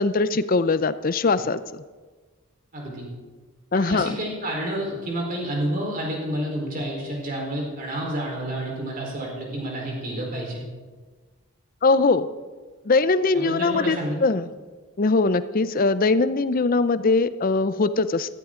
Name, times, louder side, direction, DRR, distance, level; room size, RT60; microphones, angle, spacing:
voice 1, 0.0-1.6 3.7-4.2 11.8-12.3 12.9-14.5 15.0-18.3, left 3 dB, 40° left, 14 dB, 0.5 m, -21 dB
voice 2, 2.7-3.1 3.7-10.6 13.3-14.2, right 1 dB, 40° right, -1 dB, 4.1 m, -29 dB
17.0 x 14.5 x 3.8 m, 1.4 s
head